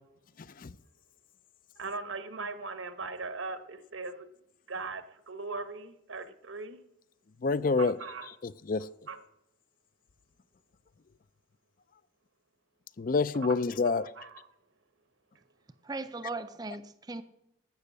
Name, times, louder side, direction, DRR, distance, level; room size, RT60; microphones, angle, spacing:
voice 1, 0.4-0.7 7.4-8.0 8.2-8.9 13.0-14.1, left 4 dB, 45° left, 0.4 m, -28 dB
voice 2, 1.8-4.3 4.7-6.8 7.8-8.3 9.1-9.2 13.4-13.5 14.2-14.3, right 3 dB, 80° right, 1.2 m, -39 dB
voice 3, 15.8-17.2, right 3 dB, 20° right, 0.4 m, -38 dB
12.0 x 6.6 x 8.2 m
head